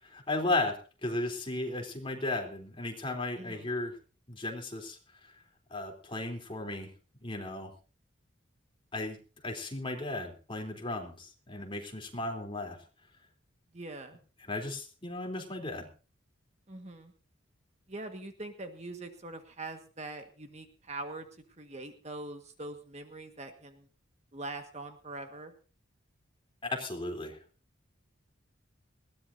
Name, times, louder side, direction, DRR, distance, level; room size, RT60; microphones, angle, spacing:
voice 1, 0.0-4.0 4.3-5.0 5.7-6.9 7.2-7.7 8.9-9.2 9.4-12.8 14.5-15.9 26.6-27.4, left 2 dB, 25° left, 3 dB, 3.4 m, -35 dB
voice 2, 3.4-3.7 13.7-14.2 16.7-17.1 17.9-21.3 21.6-23.9 24.3-25.5, right 2 dB, 35° right, 6 dB, 1.6 m, -43 dB
20.5 x 17.0 x 2.7 m, 0.37 s
head